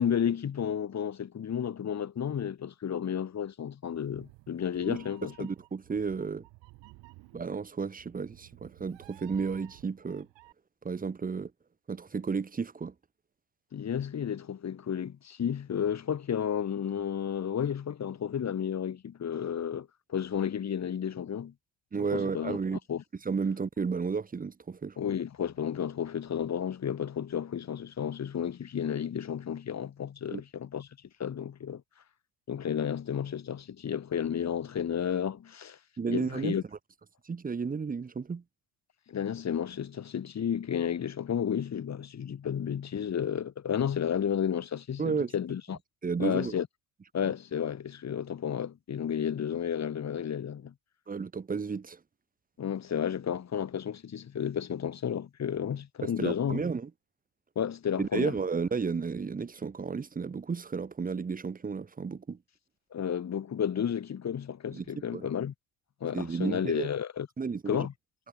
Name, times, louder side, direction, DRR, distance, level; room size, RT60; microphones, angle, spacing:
voice 1, 0.0-5.5 13.7-21.5 22.1-23.0 25.0-30.9 31.2-31.8 32.5-35.8 36.1-36.6 39.1-45.8 46.2-46.7 47.1-50.7 52.6-56.6 57.6-58.3 62.9-65.5 66.0-67.3 67.7-67.9, left 8 dB, 35° left, 4.2 m, -32 dB
Meow, 3.8-10.5, right 22 dB, 75° right, 5.8 m, -55 dB
voice 2, 5.4-6.5 7.3-10.3 10.8-11.5 11.9-12.9 21.9-22.8 23.2-25.0 30.3-30.4 36.0-36.6 37.2-38.4 45.0-45.3 46.0-46.6 51.1-52.0 56.0-56.9 58.0-62.4 64.7-64.8 65.1-65.3 66.1-66.9 67.4-67.9, right 5 dB, 20° right, 1.3 m, -32 dB
cardioid pair, 115°, 44 cm